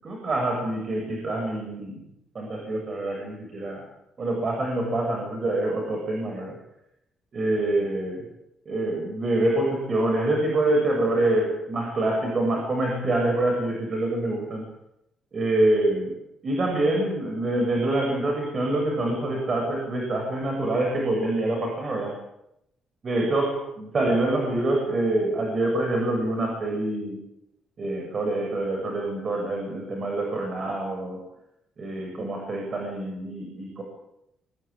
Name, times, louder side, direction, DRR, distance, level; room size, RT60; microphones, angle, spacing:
voice 1, 0.0-2.0 2.3-3.8 4.2-6.6 7.3-8.3 8.7-14.7 15.3-16.2 16.4-22.1 23.0-27.2 27.8-31.2 31.8-33.8, right 2 dB, 45° right, 2 dB, 7.6 m, -26 dB
25.5 x 17.5 x 9.0 m, 0.82 s
cardioid pair, 90°, 0 cm